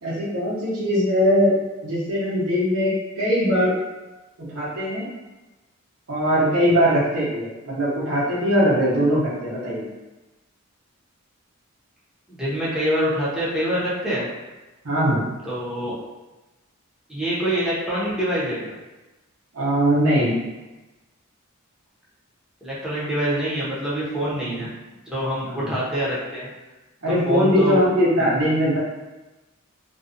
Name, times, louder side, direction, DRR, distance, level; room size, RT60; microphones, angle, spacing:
voice 1, 0.0-1.5 1.8-3.7 4.5-5.1 6.1-9.8 14.8-15.2 19.5-20.4 24.5-24.6 25.5-25.7 27.0-28.8, equal, 75° right, -8 dB, 0.9 m, -21 dB
voice 2, 12.3-14.3 15.5-16.0 17.1-18.7 22.6-24.7 25.1-26.5 27.3-27.8 28.2-28.3, equal, 5° right, -9 dB, 0.7 m, -25 dB
2.6 x 2.3 x 2.5 m, 1.1 s
head